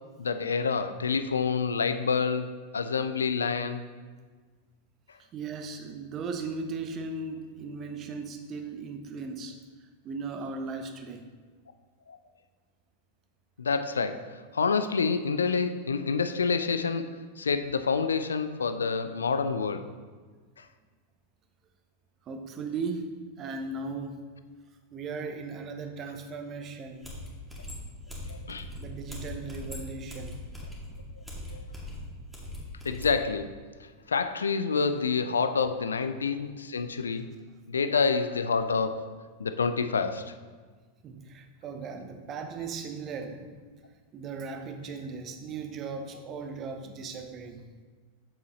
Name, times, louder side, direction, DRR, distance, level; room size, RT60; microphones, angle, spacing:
voice 1, 0.2-3.8 12.1-12.2 13.6-19.9 28.3-28.7 31.5-31.6 32.8-33.5 34.1-37.4 37.7-39.1 39.4-40.3, left 5 dB, 70° left, 10 dB, 0.4 m, -28 dB
voice 2, 5.3-9.6 10.0-11.2 22.3-24.2 24.9-27.1 28.8-30.4 41.0-43.5 44.1-47.6, right 4 dB, 30° right, 6 dB, 0.8 m, -37 dB
sound 1, 27.0-33.1, left 1 dB, 5° right, 2.1 m, -40 dB
8.1 x 7.1 x 3.1 m, 1.5 s
figure-of-eight pair, 90°, 0 cm